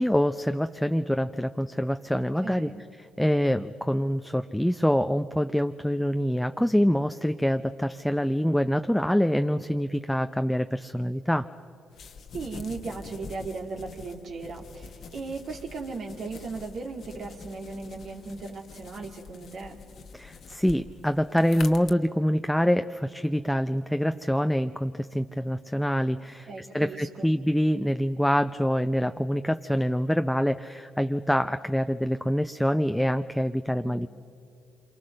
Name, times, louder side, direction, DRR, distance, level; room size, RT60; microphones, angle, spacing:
voice 1, 0.0-2.7 3.2-11.5 20.1-34.1, equal, 5° left, 8 dB, 0.6 m, -25 dB
voice 2, 2.1-2.8 12.3-19.8 26.5-27.3 33.8-34.1, right 4 dB, 60° right, 2 dB, 2.1 m, -37 dB
sound 1, 11.9-21.9, left 5 dB, 55° left, 1.2 m, -45 dB
27.5 x 23.5 x 6.5 m, 2.7 s
hypercardioid pair, 50°, 0 cm